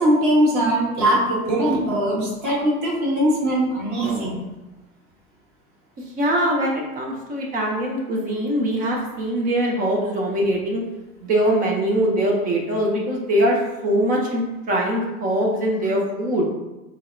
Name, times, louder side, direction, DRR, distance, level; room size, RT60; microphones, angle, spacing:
voice 1, 0.0-4.5, right 1 dB, 40° right, -4 dB, 1.2 m, -21 dB
voice 2, 6.2-10.8 11.2-13.6 13.8-16.4, right 1 dB, 20° right, -1 dB, 0.4 m, -22 dB
3.8 x 2.0 x 2.5 m, 1.0 s
hypercardioid pair, 95°, 44 cm